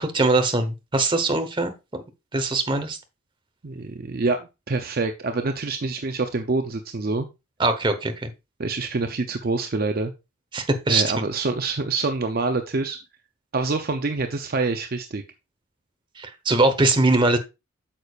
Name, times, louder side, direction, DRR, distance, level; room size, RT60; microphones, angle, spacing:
voice 1, 0.0-2.0 2.3-3.0 7.6-8.3 10.5-11.0 16.2-17.4, right 2 dB, 25° right, 7 dB, 1.0 m, -22 dB
voice 2, 3.6-7.3 8.6-10.1 10.9-13.0 13.5-15.2, right 3 dB, 45° right, 6 dB, 0.5 m, -26 dB
8.7 x 6.7 x 2.4 m, 0.25 s
head